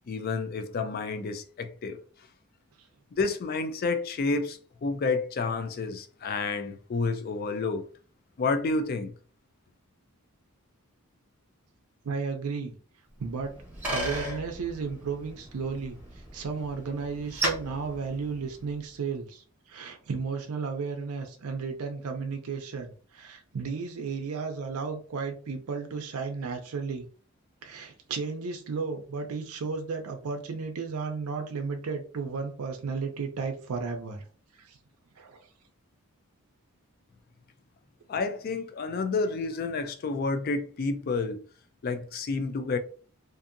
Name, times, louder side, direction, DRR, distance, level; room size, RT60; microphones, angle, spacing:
voice 1, 0.1-2.0 3.1-7.9 8.4-9.1 38.1-41.4 41.8-42.8, left 3 dB, 45° left, 0.3 m, -30 dB
voice 2, 12.0-12.7 13.2-13.5 13.9-27.1 27.6-34.2 34.6-34.8 35.2-35.5, right 5 dB, 80° right, 0.5 m, -34 dB
Bicycle, 13.2-18.9, right 1 dB, 10° right, 0.8 m, -36 dB
2.7 x 2.5 x 2.5 m
head